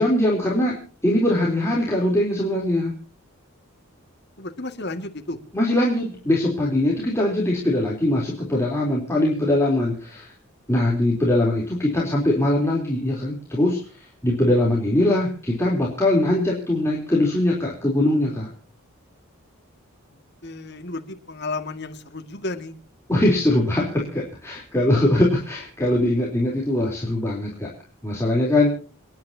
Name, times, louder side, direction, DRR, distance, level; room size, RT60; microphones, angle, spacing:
voice 1, 0.0-2.9 5.5-10.3 10.7-18.5 23.1-27.7 28.0-28.7, left 1 dB, 10° left, -4 dB, 3.5 m, -21 dB
voice 2, 4.4-5.4 20.4-22.7, left 2 dB, 50° left, 5 dB, 2.0 m, -32 dB
29.5 x 10.5 x 2.8 m, 0.41 s
head